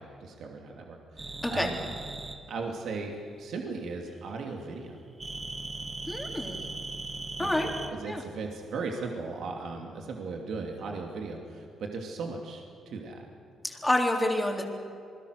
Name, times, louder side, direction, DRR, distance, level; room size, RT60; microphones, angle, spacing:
voice 1, 0.0-1.9 2.5-4.9 7.4-13.2, right 4 dB, 70° right, 2 dB, 2.6 m, -37 dB
sound 1, 1.2-2.4 5.2-7.9, right 3 dB, 25° right, 2.2 m, -38 dB
voice 2, 6.1-6.6 7.4-7.7 8.1-8.2 13.6-14.6, left 1 dB, 10° left, 1 dB, 3.8 m, -28 dB
27.0 x 21.0 x 6.6 m, 2.5 s
cardioid pair, 90°, 0 cm